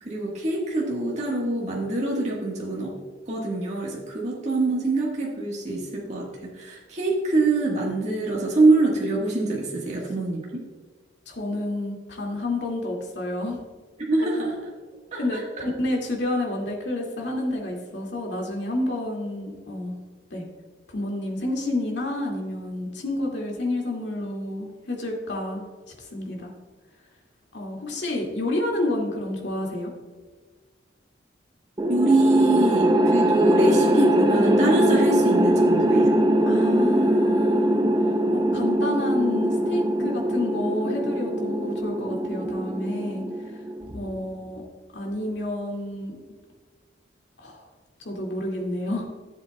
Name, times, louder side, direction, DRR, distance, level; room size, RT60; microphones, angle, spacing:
voice 1, 0.0-2.9 3.3-10.5 14.0-14.5 15.1-15.6 31.9-36.2, right 2 dB, 40° right, -3 dB, 1.5 m, -24 dB
voice 2, 11.3-13.6 14.2-14.3 15.2-20.0 20.3-20.4 20.9-25.6 26.1-26.5 27.5-29.9 36.4-37.8 38.3-43.2 43.9-44.6 44.9-46.1 47.4-47.6 48.0-49.1, left 1 dB, 70° left, -1 dB, 2.2 m, -29 dB
sound 1, 31.8-44.1, right 1 dB, 20° right, 0.5 m, -22 dB
14.5 x 7.5 x 2.2 m, 1.4 s
head